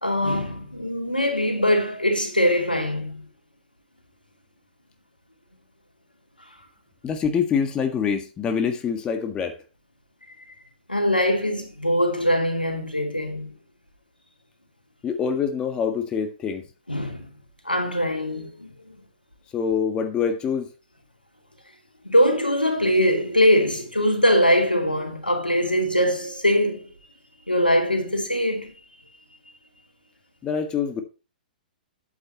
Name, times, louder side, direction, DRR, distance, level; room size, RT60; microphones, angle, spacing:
voice 1, 0.0-3.2 10.9-13.5 16.9-17.3 17.6-19.0 22.0-26.9 27.5-28.7, equal, 90° left, 2.8 m, -22 dB
voice 2, 7.0-9.6 15.0-16.6 19.5-20.7 30.4-31.0, left 6 dB, 20° left, 1.6 m, -25 dB
13.0 x 8.4 x 3.0 m
figure-of-eight pair, 115°, 5 cm